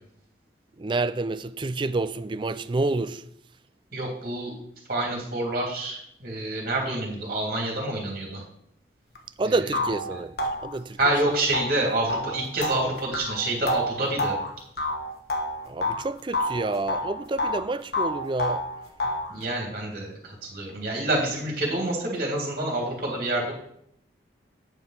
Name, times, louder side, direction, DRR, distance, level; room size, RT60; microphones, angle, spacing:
voice 1, 0.8-3.2 9.4-11.1 15.7-18.7, right 3 dB, 25° right, 0.4 m, -29 dB
voice 2, 3.9-4.5 4.9-8.4 9.4-9.6 10.1-10.2 11.0-14.3 19.3-23.5, right 2 dB, 50° right, 3.1 m, -27 dB
sound 1, 9.2-9.3 9.7-16.0 16.3-17.6 17.9-19.3, left 1 dB, 60° left, 1.4 m, -29 dB
9.4 x 5.4 x 6.0 m
head